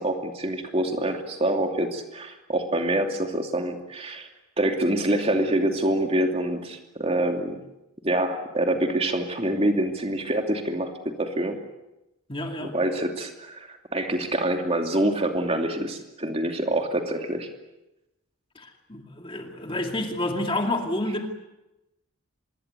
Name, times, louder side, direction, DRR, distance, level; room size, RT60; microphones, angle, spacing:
voice 1, 0.0-4.3 4.6-7.6 8.0-11.6 12.6-17.5, right 1 dB, 30° right, 4 dB, 2.7 m, -26 dB
voice 2, 12.3-12.7 18.6-21.3, left 1 dB, 25° left, 3 dB, 2.4 m, -29 dB
26.0 x 22.0 x 8.2 m, 0.94 s
head